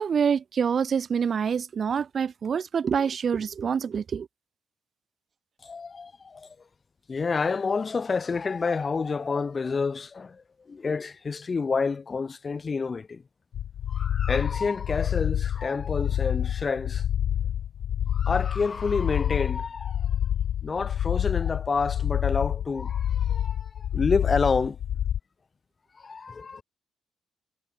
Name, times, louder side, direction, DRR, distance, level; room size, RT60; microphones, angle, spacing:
voice 1, 0.0-4.3, right 7 dB, 50° right, 3.2 m, -26 dB
voice 2, 5.6-6.6 7.1-13.2 13.9-17.0 18.1-20.1 20.6-24.8 25.9-26.6, left 4 dB, 35° left, 5.3 m, -29 dB
sound 1, 13.5-25.2, left 10 dB, 70° left, 2.0 m, -28 dB
cardioid pair, 90°, 0 cm